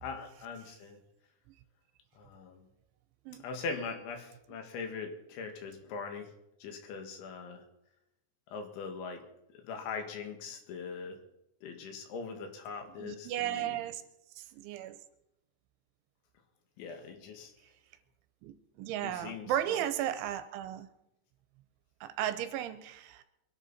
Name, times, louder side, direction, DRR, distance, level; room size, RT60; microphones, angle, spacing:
voice 1, 0.0-1.0 2.2-2.7 3.4-6.3 6.6-7.6 8.5-9.2 9.6-11.2 11.6-13.7 16.8-17.5 19.0-19.8, left 5 dB, 75° left, 5 dB, 4.2 m, -41 dB
voice 2, 13.0-14.0 14.4-15.0 18.4-20.9 22.0-23.2, right 11 dB, 85° right, 11 dB, 3.3 m, -35 dB
24.0 x 11.5 x 4.3 m, 0.86 s
omnidirectional pair, 5.5 m